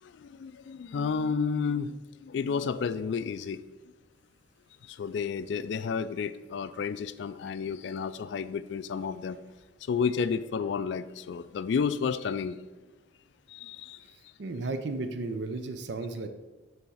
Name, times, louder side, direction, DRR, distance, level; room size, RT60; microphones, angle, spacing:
voice 1, 0.0-3.6 4.8-9.4 9.8-12.6 13.5-14.0, left 6 dB, 70° left, 14 dB, 0.3 m, -31 dB
voice 2, 14.4-16.3, right 3 dB, 70° right, 8 dB, 0.5 m, -34 dB
6.8 x 3.5 x 6.3 m, 1.1 s
head